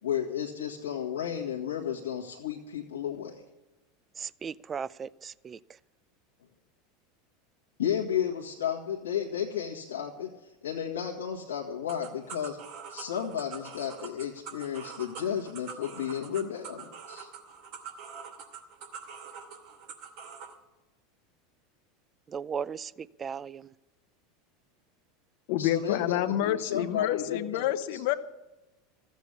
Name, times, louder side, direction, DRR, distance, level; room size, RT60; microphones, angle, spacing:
voice 1, 0.0-3.4 7.8-12.6 12.9-17.3 25.6-28.0, left 9 dB, 90° left, 1.7 m, -33 dB
voice 2, 4.2-5.6 22.3-22.9 23.2-23.7, right 6 dB, 30° right, 0.4 m, -36 dB
sound 1, 11.9-20.5, right 6 dB, 60° right, 2.5 m, -44 dB
voice 3, 25.5-28.1, left 13 dB, 65° left, 1.0 m, -28 dB
14.5 x 8.3 x 8.3 m
hypercardioid pair, 95°, 0 cm